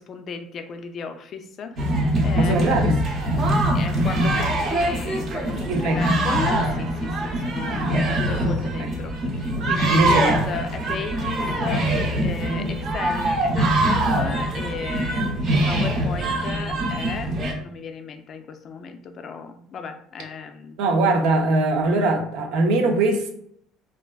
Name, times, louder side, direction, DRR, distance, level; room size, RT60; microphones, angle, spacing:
voice 1, 0.0-2.8 3.7-20.8, left 5 dB, 40° left, 7 dB, 0.3 m, -35 dB
sound 1, 1.8-17.5, right 1 dB, 40° right, 0.7 m, -23 dB
voice 2, 2.3-3.0 5.7-6.0 9.9-10.3 12.4-12.7 20.8-23.3, right 2 dB, 80° right, 3 dB, 0.6 m, -21 dB
3.3 x 2.4 x 2.2 m, 0.68 s
cardioid pair, 145°, 0 cm